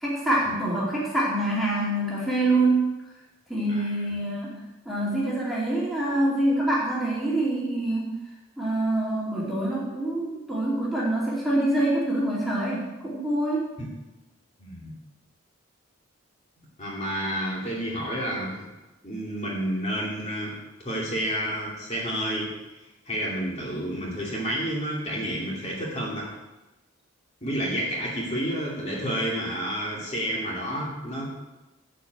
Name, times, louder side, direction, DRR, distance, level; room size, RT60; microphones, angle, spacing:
voice 1, 0.0-2.9 3.5-4.6 4.9-8.1 8.6-13.7, right 1 dB, ahead, -7 dB, 2.5 m, -25 dB
voice 2, 14.6-14.9 16.8-18.7 19.0-20.5 20.8-22.5 23.1-26.3 27.4-31.3, equal, 30° left, -4 dB, 2.6 m, -30 dB
13.0 x 5.2 x 8.1 m, 1.0 s
head